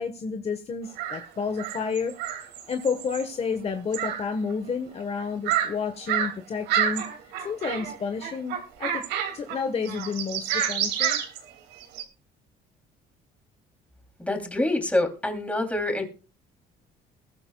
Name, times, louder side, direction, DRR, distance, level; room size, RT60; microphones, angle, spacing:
voice 1, 0.0-2.1 2.7-7.0 7.4-9.1 9.3-11.2, left 5 dB, 40° left, 7 dB, 1.3 m, -30 dB
sound 1, 1.0-1.3 1.6-3.3 3.9-4.3 4.5-4.6 5.2-5.7 6.1-6.3 6.7-8.0 8.2-9.6 9.9-12.0, right 10 dB, 85° right, 2.6 m, -28 dB
voice 2, 14.2-16.1, left 2 dB, 10° left, 4 dB, 3.1 m, -26 dB
21.0 x 11.0 x 2.4 m, 0.33 s
cardioid pair, 110°, 17 cm